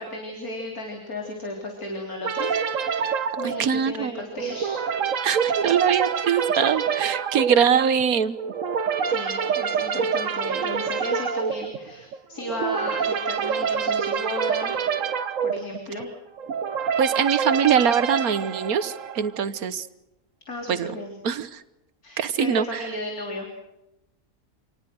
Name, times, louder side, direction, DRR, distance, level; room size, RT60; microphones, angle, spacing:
voice 1, 0.0-4.8 9.1-14.7 15.4-16.1 20.5-21.2 22.0-23.5, left 1 dB, 85° left, 1 dB, 4.0 m, -34 dB
sound 1, 2.2-19.4, right 7 dB, 65° right, 1.4 m, -27 dB
voice 2, 3.4-4.2 5.2-8.3 17.0-19.9 20.7-20.9 21.2-21.6 22.2-22.8, right 7 dB, 80° right, 13 dB, 1.6 m, -23 dB
27.5 x 19.0 x 6.3 m, 0.92 s
omnidirectional pair, 1.5 m